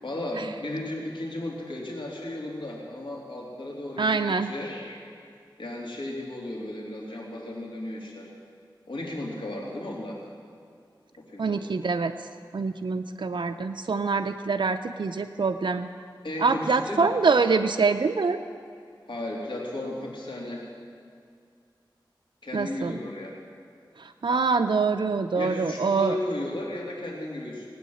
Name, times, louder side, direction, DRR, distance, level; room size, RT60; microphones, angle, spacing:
voice 1, 0.0-5.0 5.6-8.3 8.9-10.2 11.2-11.6 16.2-17.0 19.1-20.6 22.4-23.4 25.3-27.7, left 1 dB, 80° left, -3 dB, 3.2 m, -34 dB
voice 2, 4.0-4.5 11.4-12.1 12.5-15.9 16.4-18.4 22.5-23.0 24.0-26.2, right 4 dB, 75° right, 6 dB, 0.5 m, -25 dB
19.5 x 9.3 x 7.8 m, 2.3 s
wide cardioid pair, 55°, 8 cm